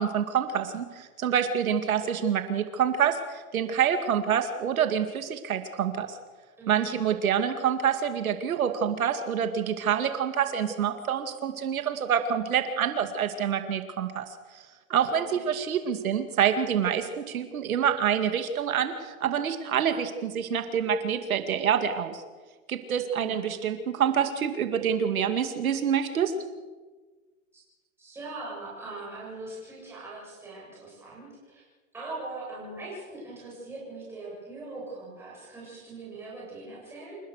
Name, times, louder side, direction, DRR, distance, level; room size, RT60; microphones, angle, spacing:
voice 1, 0.0-6.2 6.7-14.6 14.9-22.2 22.7-26.3, right 8 dB, 85° right, 7 dB, 2.3 m, -27 dB
voice 2, 6.6-6.9 15.1-15.4 23.2-23.6 27.5-27.6 28.0-31.6 31.9-37.2, right 2 dB, 5° right, -6 dB, 7.8 m, -41 dB
28.5 x 16.0 x 6.6 m, 1.4 s
hypercardioid pair, 175°, 41 cm